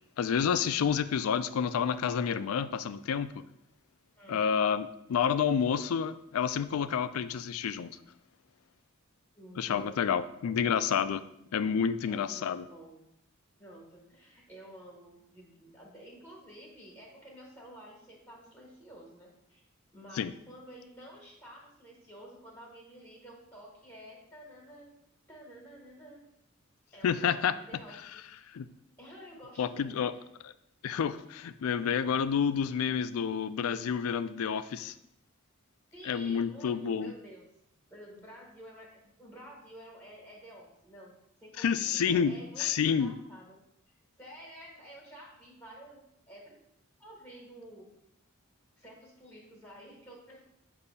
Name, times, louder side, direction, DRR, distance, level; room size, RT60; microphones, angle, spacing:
voice 1, 0.2-3.4 4.3-8.0 9.6-11.2 11.5-12.6 20.2-20.3 27.0-27.5 28.5-28.7 29.6-30.1 30.4-30.5 30.8-34.9 36.1-37.1 41.6-43.1, left 7 dB, 85° left, 13 dB, 0.4 m, -29 dB
voice 2, 9.3-10.6 12.1-13.0 13.6-19.6 19.9-24.9 25.3-26.2 26.9-28.5 29.0-30.2 35.9-37.5 37.9-41.1 41.4-43.6 43.9-46.0 46.3-46.6 47.0-47.9 48.8-50.4, right 1 dB, 10° left, -2 dB, 1.2 m, -51 dB
6.7 x 2.7 x 5.4 m, 0.78 s
head